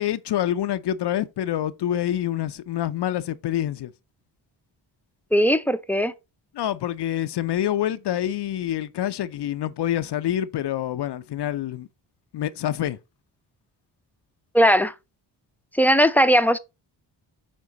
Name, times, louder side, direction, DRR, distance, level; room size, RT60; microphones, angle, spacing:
voice 1, 0.0-3.9 6.5-11.9 12.3-13.0, left 11 dB, 55° left, 0.6 m, -26 dB
voice 2, 5.3-6.1 14.5-14.9 15.7-16.6, equal, 5° left, 0.6 m, -18 dB
7.4 x 3.7 x 3.8 m
supercardioid pair, 45°, 49 cm